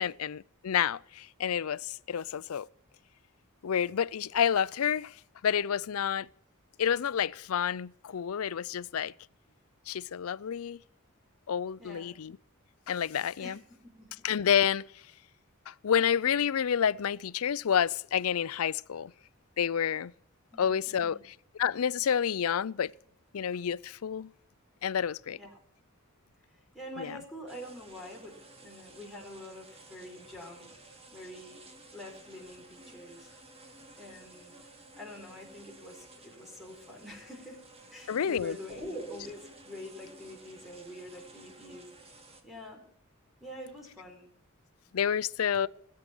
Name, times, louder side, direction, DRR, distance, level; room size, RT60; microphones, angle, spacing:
voice 1, 0.0-2.7 3.6-5.1 5.4-6.3 6.8-9.1 9.9-10.8 11.5-12.4 12.9-13.6 14.2-14.9 15.7-19.1 19.6-20.1 20.6-21.2 21.5-22.9 23.3-24.3 24.8-25.4 27.0-27.1 38.1-38.6 44.9-45.7, left 8 dB, 90° left, 0.5 m, -29 dB
voice 2, 11.8-12.1 13.4-14.1 20.5-21.2 25.3-25.6 26.7-30.7 31.1-31.6 31.9-33.3 34.0-34.5 35.0-37.6 37.9-41.9 42.4-42.8 43.4-44.3 45.6-45.7, left 1 dB, ahead, 4.3 m, -45 dB
sound 1, 27.5-42.4, right 2 dB, 30° right, 2.4 m, -53 dB
19.0 x 8.6 x 6.2 m
head